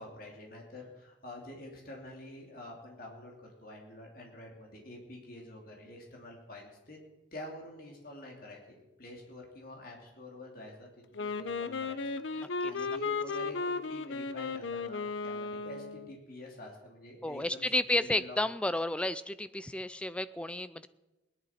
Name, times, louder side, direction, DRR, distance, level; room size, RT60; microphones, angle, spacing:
voice 1, 0.0-3.3 3.6-7.0 7.3-12.0 12.3-17.6 18.1-18.4, left 1 dB, 50° left, 0 dB, 2.7 m, -48 dB
Wind instrument woodwind instrument, 11.2-16.2, left 4 dB, 80° left, 0.7 m, -35 dB
voice 2, 12.4-12.7 17.2-20.9, left 1 dB, 5° left, 14 dB, 0.4 m, -32 dB
20.0 x 11.0 x 4.4 m, 1.0 s
head